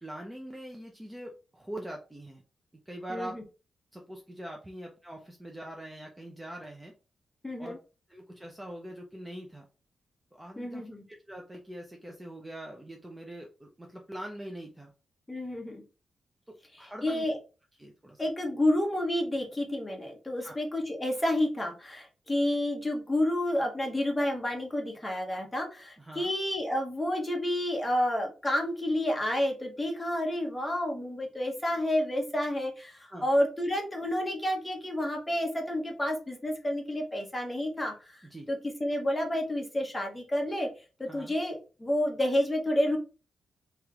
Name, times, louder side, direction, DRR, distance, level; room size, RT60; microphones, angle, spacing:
voice 1, 0.0-2.4 2.9-3.4 3.9-6.9 7.6-7.7 8.1-9.7 10.3-14.9 16.5-17.3 17.8-18.2 20.4-20.6 26.0-26.3 33.1-33.3 38.2-38.5 41.1-41.4, right 1 dB, 10° right, 1 dB, 0.6 m, -43 dB
voice 2, 3.1-3.4 7.4-7.8 10.6-11.0 15.3-15.8 17.0-17.4 18.2-38.2 38.5-40.7 41.0-43.0, left 1 dB, 15° left, 2 dB, 1.1 m, -30 dB
3.1 x 3.0 x 3.5 m, 0.33 s
cardioid pair, 105°, 0 cm